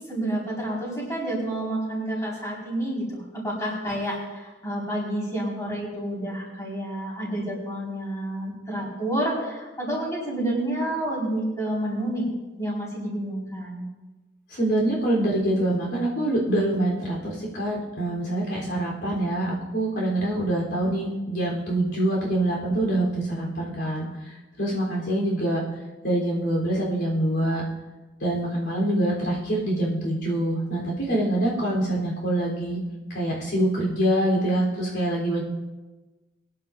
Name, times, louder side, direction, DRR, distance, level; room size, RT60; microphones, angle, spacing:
voice 1, 0.1-12.3 12.6-13.8, right 1 dB, 15° left, -6 dB, 5.2 m, -29 dB
voice 2, 14.5-25.6 26.0-27.6 28.2-32.8 33.1-35.4, right 1 dB, 70° left, -3 dB, 3.7 m, -25 dB
23.0 x 11.0 x 2.7 m, 1.2 s
head